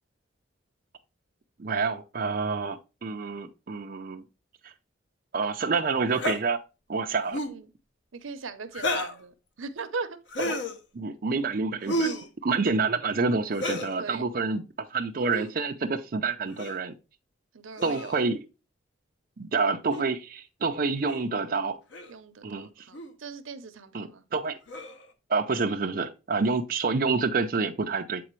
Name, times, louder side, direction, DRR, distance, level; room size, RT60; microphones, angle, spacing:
voice 1, 1.6-4.2 4.6-4.7 5.3-6.6 6.9-7.4 10.9-12.1 12.4-14.6 14.9-16.9 17.8-18.4 19.4-21.8 22.4-22.9 23.9-24.6 25.3-28.2, right 4 dB, 45° right, 0.5 m, -28 dB
sound 1, 6.1-6.4 7.2-7.6 8.7-9.2 10.3-10.8 11.9-12.3 13.5-13.9 15.2-15.5 16.6-16.8 17.8-18.2 19.9-20.0 21.1-21.2 21.9-22.1 22.9-23.1 24.7-25.1, left 1 dB, 60° left, 0.8 m, -31 dB
voice 2, 8.1-10.2 12.0-12.3 14.0-14.2 17.5-18.2 22.1-24.2, right 4 dB, 80° right, 0.7 m, -39 dB
7.7 x 4.1 x 3.0 m
head